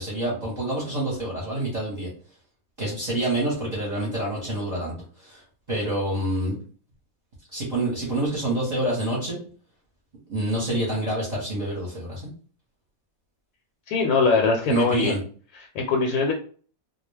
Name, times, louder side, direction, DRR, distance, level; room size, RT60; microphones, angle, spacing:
voice 1, 0.0-2.1 2.8-4.9 5.2-5.4 5.7-6.5 7.5-9.4 10.3-12.2 14.7-15.2, right 1 dB, 35° right, -5 dB, 0.9 m, -27 dB
voice 2, 13.9-15.2 15.5-16.3, left 4 dB, 75° left, 1 dB, 1.0 m, -22 dB
2.2 x 2.2 x 3.2 m, 0.42 s
omnidirectional pair, 1.5 m